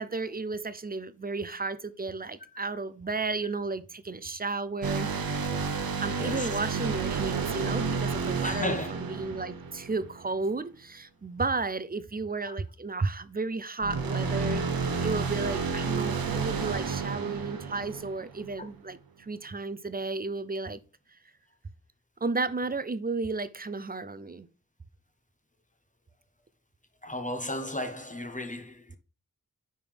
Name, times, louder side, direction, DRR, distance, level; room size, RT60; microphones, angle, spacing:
voice 1, 0.0-5.1 5.6-20.8 22.2-24.5, right 3 dB, 25° right, 0.5 m, -33 dB
sound 1, 4.8-10.3 13.8-18.6, right 5 dB, 85° right, 0.8 m, -31 dB
voice 2, 6.2-6.6 8.4-9.0 12.4-12.6 27.0-29.0, left 1 dB, 20° left, 0.8 m, -35 dB
9.3 x 3.7 x 3.4 m
wide cardioid pair, 55°, 34 cm